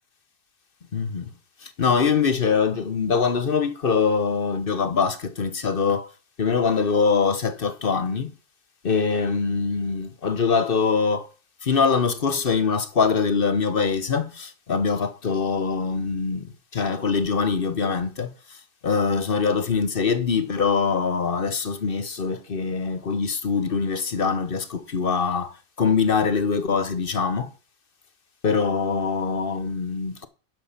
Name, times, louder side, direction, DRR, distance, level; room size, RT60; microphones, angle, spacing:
voice 1, 0.9-1.3 1.6-6.1 6.4-8.3 8.8-11.3 11.6-18.3 18.8-27.5 28.4-30.3, left 5 dB, 45° left, 1.0 m, -23 dB
11.5 x 6.3 x 5.8 m
omnidirectional pair, 1.4 m